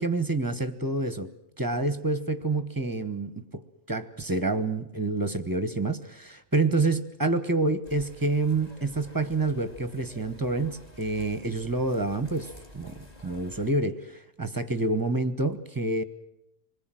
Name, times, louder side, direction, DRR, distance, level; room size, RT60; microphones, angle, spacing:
voice 1, 0.0-1.3 1.6-3.6 3.9-16.0, right 2 dB, 15° right, 11 dB, 1.0 m, -28 dB
sound 1, 7.8-13.7, equal, 30° left, 2.2 m, -50 dB
26.5 x 20.5 x 7.7 m, 0.81 s
omnidirectional pair, 1.5 m